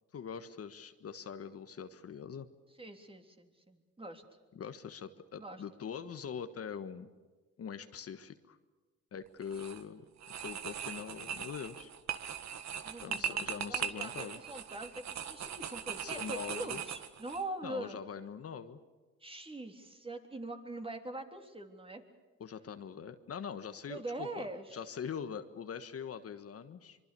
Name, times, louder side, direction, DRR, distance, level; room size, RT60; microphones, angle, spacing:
voice 1, 0.1-2.5 4.5-7.1 7.6-8.6 9.1-10.0 10.4-11.9 13.0-14.4 16.0-16.8 17.6-18.8 22.4-24.5 24.7-27.0, left 7 dB, 50° left, 9 dB, 1.4 m, -43 dB
voice 2, 2.8-4.2 5.4-5.6 12.8-18.0 19.2-22.0 23.9-24.8, right 2 dB, 20° right, 5 dB, 3.4 m, -43 dB
sound 1, 9.4-9.8 10.2-17.4, right 8 dB, 65° right, 1.8 m, -40 dB
25.0 x 24.0 x 6.9 m, 1.3 s
cardioid pair, 90°, 30 cm